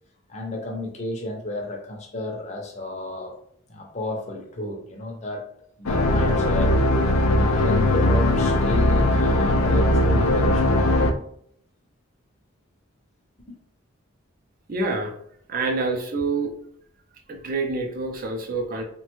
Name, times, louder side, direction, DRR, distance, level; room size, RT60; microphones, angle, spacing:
voice 1, 0.3-3.3 3.7-5.4 5.8-6.7 7.4-11.0 13.5-13.6, left 2 dB, 30° left, 0 dB, 0.6 m, -32 dB
sound 1, 5.9-11.1, left 1 dB, 85° left, 0.4 m, -19 dB
voice 2, 14.7-15.1 15.5-16.5 17.3-18.8, right 3 dB, 40° right, 3 dB, 0.5 m, -27 dB
3.2 x 2.2 x 3.0 m, 0.66 s
head